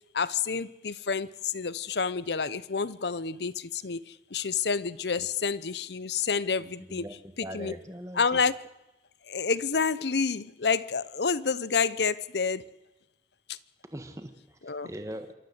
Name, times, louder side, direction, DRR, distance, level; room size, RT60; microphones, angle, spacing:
voice 1, 0.1-7.0 7.4-7.7 8.1-8.6 9.3-12.6 13.5-13.6 14.6-14.9, left 5 dB, 75° left, 17 dB, 0.8 m, -29 dB
voice 2, 6.6-8.4 13.9-15.3, equal, 20° right, 7 dB, 1.6 m, -41 dB
27.0 x 13.0 x 8.1 m, 0.98 s
head